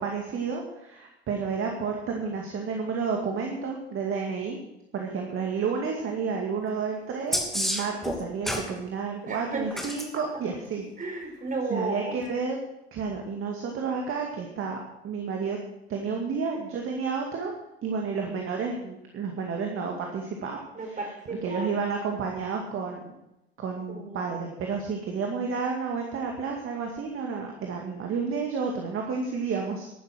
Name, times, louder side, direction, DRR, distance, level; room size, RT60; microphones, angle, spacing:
voice 1, 0.0-4.6 4.9-10.9 11.7-12.6 12.9-14.8 15.0-15.6 15.9-17.5 17.8-21.1 21.4-23.0 23.6-29.9, right 5 dB, 40° right, 1 dB, 2.2 m, -31 dB
sound 1, 7.3-8.7 9.7-10.1 12.2-12.3, equal, ahead, 2.6 m, -29 dB
voice 2, 9.2-9.7 11.0-12.2 20.7-21.8 23.9-24.3, right 3 dB, 25° right, 2 dB, 4.8 m, -33 dB
11.5 x 11.5 x 6.2 m, 0.88 s
figure-of-eight pair, 65°, 32 cm